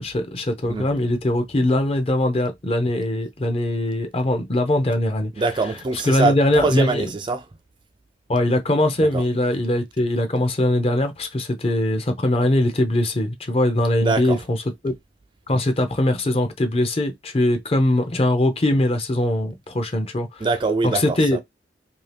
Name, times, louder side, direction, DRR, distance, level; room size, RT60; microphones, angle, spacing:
voice 1, 0.0-5.3 6.0-7.0 8.3-14.6 14.8-14.9 15.5-20.5 20.8-21.4, left 1 dB, 35° left, 0.6 m, -21 dB
voice 2, 5.4-7.4 9.1-9.2 14.0-14.4 20.4-21.4, right 3 dB, 25° right, 0.3 m, -23 dB
2.7 x 2.7 x 3.3 m
head